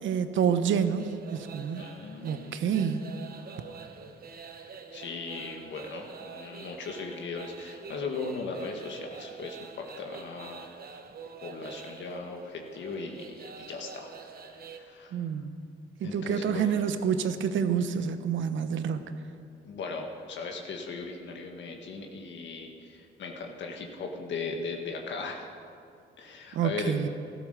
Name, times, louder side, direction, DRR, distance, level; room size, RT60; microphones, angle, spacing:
voice 1, 0.0-1.9 2.2-3.1 15.1-15.5 16.0-19.0 26.5-27.1, right 7 dB, 75° right, 10 dB, 1.1 m, -28 dB
sound 1, 1.0-14.8, right 6 dB, 50° right, 1.2 m, -46 dB
voice 2, 1.7-2.7 4.9-10.7 11.4-15.2 16.0-16.7 19.6-25.5 26.2-27.0, left 4 dB, 65° left, 2 dB, 1.7 m, -38 dB
15.0 x 12.5 x 6.7 m, 2.5 s
cardioid pair, 90°, 20 cm